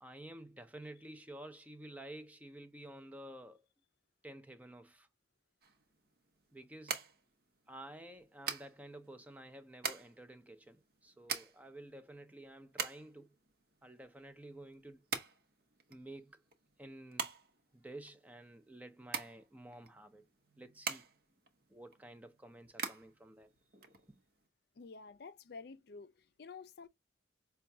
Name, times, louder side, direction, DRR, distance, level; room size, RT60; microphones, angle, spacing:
voice 1, 0.0-3.7 4.2-5.1 6.5-7.0 7.7-13.4 13.8-15.0 15.9-16.4 16.8-17.3 17.7-20.2 20.6-21.1 21.7-23.5 24.1-24.2, right 1 dB, 10° right, 0.4 m, -51 dB
sound 1, 5.6-24.5, right 6 dB, 55° right, 0.8 m, -45 dB
voice 2, 24.8-26.9, left 4 dB, 60° left, 0.4 m, -50 dB
5.5 x 2.3 x 2.7 m
head